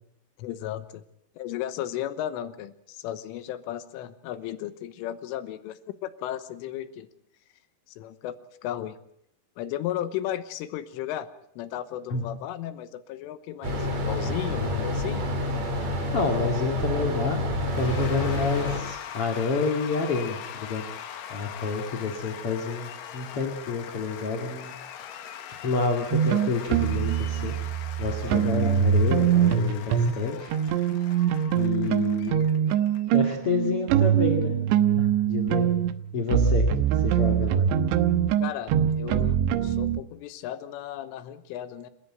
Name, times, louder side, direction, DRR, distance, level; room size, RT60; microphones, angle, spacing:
voice 1, 0.4-1.0 1.4-7.1 7.9-9.0 9.6-11.3 11.6-15.2 38.4-41.9, left 12 dB, 85° left, 12 dB, 3.6 m, -35 dB
sound 1, 13.6-18.8, left 1 dB, 35° right, 4.7 m, -28 dB
voice 2, 16.1-17.4 17.8-20.8 21.3-24.7 25.2-25.3 25.6-27.5 28.0-30.5 31.5-32.5 33.1-34.6 34.9-35.7 36.1-36.6 36.9-37.6, left 4 dB, 40° left, 3 dB, 2.2 m, -29 dB
Cheering / Applause / Crowd, 17.6-33.3, left 9 dB, 65° left, 2.3 m, -41 dB
sound 2, 26.1-30.2 30.5-40.0, right 9 dB, 75° right, 3.0 m, -23 dB
28.5 x 14.0 x 9.0 m, 0.73 s
omnidirectional pair, 5.6 m